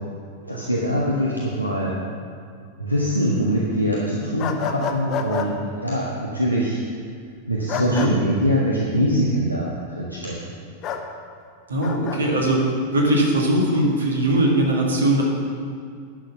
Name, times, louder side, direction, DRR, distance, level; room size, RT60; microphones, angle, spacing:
voice 1, 0.4-2.0 2.8-6.8 7.5-9.7 10.0-10.6, equal, 90° right, -4 dB, 1.0 m, -23 dB
sound 1, 4.4-5.5 7.7-8.1 10.8-11.0 11.8-12.2, left 7 dB, 35° left, 0.8 m, -28 dB
voice 2, 7.7-8.1 11.7-12.7 12.9-15.2, right 1 dB, 70° right, -2 dB, 1.8 m, -20 dB
10.5 x 6.4 x 5.7 m, 2.2 s
figure-of-eight pair, 90°, 0 cm